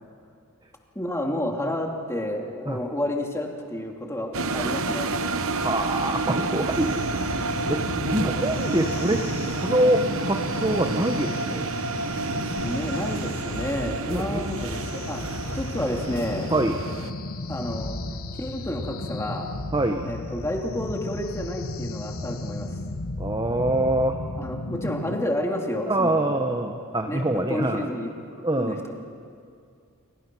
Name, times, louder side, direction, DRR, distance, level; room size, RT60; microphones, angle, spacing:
voice 1, 0.9-5.1 12.6-15.2 15.5-16.5 17.5-18.0 18.4-19.5 20.0-22.7 24.4-26.7 27.0-28.2 28.6-28.9, left 1 dB, 10° left, 1 dB, 2.6 m, -30 dB
sound 1, 4.3-17.1, right 3 dB, 65° right, 1.0 m, -30 dB
voice 2, 5.5-11.7 14.1-14.4 16.5-16.8 19.7-20.1 23.2-24.2 25.9-27.9 28.4-28.8, right 1 dB, 20° right, 5 dB, 1.1 m, -25 dB
sound 2, 6.7-25.2, left 2 dB, 65° left, 1.3 m, -34 dB
29.5 x 23.5 x 6.2 m, 2.3 s
head